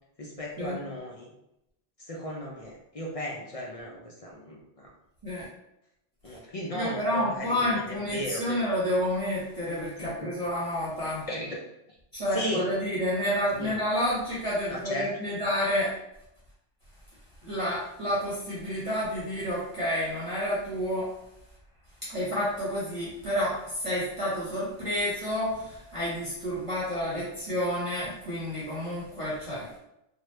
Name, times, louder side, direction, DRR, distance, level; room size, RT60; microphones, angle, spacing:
voice 1, 0.2-1.3 2.0-4.9 6.2-8.6 10.0-10.3 11.3-11.6 12.3-12.6 13.6-13.8 14.7-15.1 27.1-27.2, equal, 45° left, -2 dB, 0.5 m, -36 dB
voice 2, 6.7-11.2 12.1-15.9 17.4-21.1 22.1-29.8, equal, 35° right, -9 dB, 0.9 m, -29 dB
2.9 x 2.3 x 3.1 m, 0.84 s
omnidirectional pair, 1.0 m